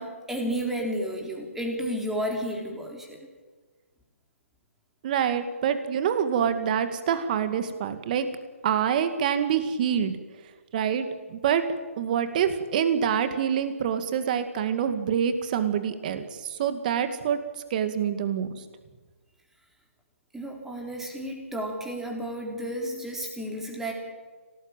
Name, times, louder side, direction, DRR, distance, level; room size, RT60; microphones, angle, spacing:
voice 1, 0.0-3.3 20.3-23.9, equal, 5° right, 1 dB, 3.8 m, -32 dB
voice 2, 5.0-8.3 8.6-10.2 10.7-11.1 11.3-11.6 12.0-17.4 17.7-18.6, right 8 dB, 35° right, 10 dB, 2.2 m, -26 dB
26.5 x 18.0 x 9.1 m, 1.4 s
figure-of-eight pair, 145°, 8 cm